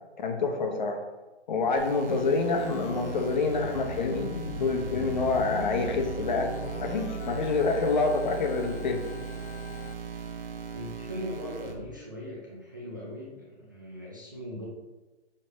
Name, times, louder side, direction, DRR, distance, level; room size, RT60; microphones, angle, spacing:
voice 1, 0.2-1.0 1.5-4.3 4.6-6.5 6.8-9.0, left 3 dB, 40° left, 4 dB, 0.8 m, -27 dB
sound 1, 1.8-11.7, right 6 dB, 50° right, 1.1 m, -38 dB
Organ, 2.6-9.9, left 8 dB, 85° left, 0.5 m, -41 dB
voice 2, 10.7-14.7, equal, 20° right, -6 dB, 0.4 m, -39 dB
6.5 x 4.9 x 3.1 m, 1.2 s
hypercardioid pair, 170°, 35 cm